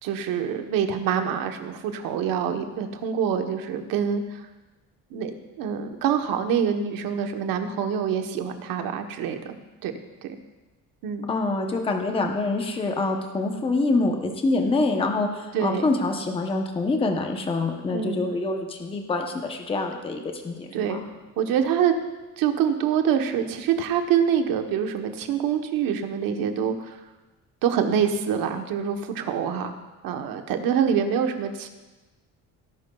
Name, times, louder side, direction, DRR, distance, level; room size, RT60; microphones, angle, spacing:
voice 1, 0.0-4.5 5.1-9.6 9.8-9.9 10.2-10.3 11.0-11.3 15.5-15.9 17.9-18.3 20.7-21.0 21.4-22.0 22.4-27.0 27.6-29.7 30.0-31.7, right 8 dB, 85° right, 6 dB, 1.1 m, -25 dB
voice 2, 11.3-21.0, left 3 dB, 15° left, 3 dB, 0.8 m, -26 dB
18.0 x 11.0 x 2.3 m, 1.1 s
cardioid pair, 180°, 33 cm